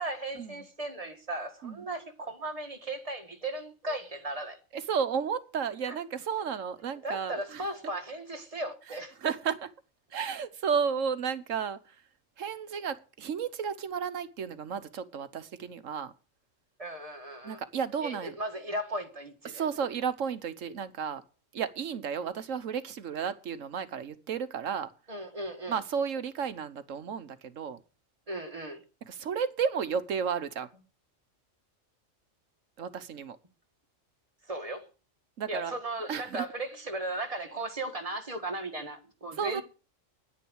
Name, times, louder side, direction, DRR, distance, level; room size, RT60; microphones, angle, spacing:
voice 1, 0.0-4.6 5.9-6.0 7.0-9.2 16.8-17.6 18.0-19.7 25.1-25.8 28.3-28.8 34.4-34.9 35.5-39.6, right 1 dB, 30° right, 1.8 m, -36 dB
voice 2, 4.7-7.6 9.2-9.6 10.1-12.0 12.4-16.1 17.4-18.3 19.4-21.2 21.5-24.9 25.7-27.8 29.0-30.7 32.8-33.4 35.4-35.7 36.1-36.5 39.4-39.6, right 7 dB, 75° right, 1.3 m, -33 dB
10.5 x 10.0 x 6.3 m
omnidirectional pair, 1.3 m